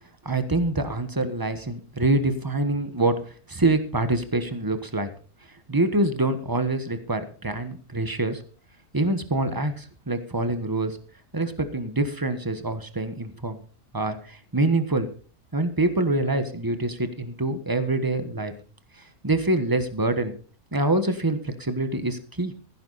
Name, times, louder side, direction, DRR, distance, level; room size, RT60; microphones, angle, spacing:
voice 1, 0.2-3.2 3.5-5.1 5.7-8.4 8.9-11.0 11.3-13.6 13.9-15.1 15.5-18.5 19.2-20.3 20.7-22.5, right 2 dB, 15° right, 9 dB, 1.3 m, -25 dB
16.0 x 10.0 x 4.2 m, 0.41 s
omnidirectional pair, 1.6 m